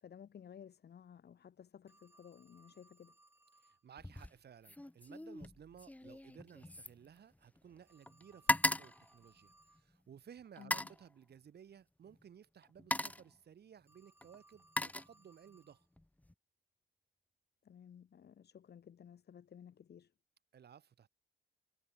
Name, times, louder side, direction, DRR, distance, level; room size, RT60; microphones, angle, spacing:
voice 1, 0.0-3.1 10.6-10.9 17.6-20.1, left 8 dB, 55° left, 4.7 m, -56 dB
Telephone, 1.9-3.8 7.8-9.9 13.8-15.8, right 2 dB, 10° right, 7.1 m, -68 dB
voice 2, 3.6-15.9 20.5-21.1, right 8 dB, 55° right, 4.0 m, -58 dB
sound 1, 4.0-4.4 4.6-7.8 8.1-10.0 10.6-11.0 12.1-12.2 12.6-13.4 14.2-15.6 16.0-16.3, left 1 dB, 5° left, 1.4 m, -38 dB
cardioid pair, 90°, 20 cm